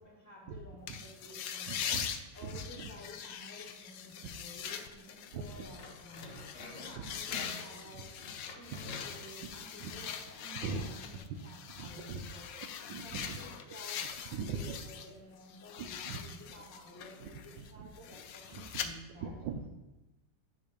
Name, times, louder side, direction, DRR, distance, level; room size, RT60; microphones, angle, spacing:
voice 1, 0.0-1.9 2.3-8.1 8.5-11.2 11.4-12.5 12.9-19.4, left 1 dB, 10° left, -2 dB, 1.7 m, -53 dB
sound 1, 0.9-15.1 15.4-18.9, left 8 dB, 70° left, 0.8 m, -43 dB
voice 2, 1.7-2.1 2.4-2.9 5.3-5.4 6.9-7.1 7.9-8.0 8.7-8.8 9.8-9.9 10.6-10.8 11.7-12.2 12.5-13.4 14.3-14.8 16.0-16.2 17.2-17.3 17.6-17.9 18.5-18.6 19.2-19.7, right 5 dB, 85° right, 7 dB, 1.5 m, -40 dB
sound 2, 5.4-10.2, left 2 dB, 40° left, 1.0 m, -49 dB
9.9 x 3.8 x 5.1 m, 1.0 s
omnidirectional pair, 2.0 m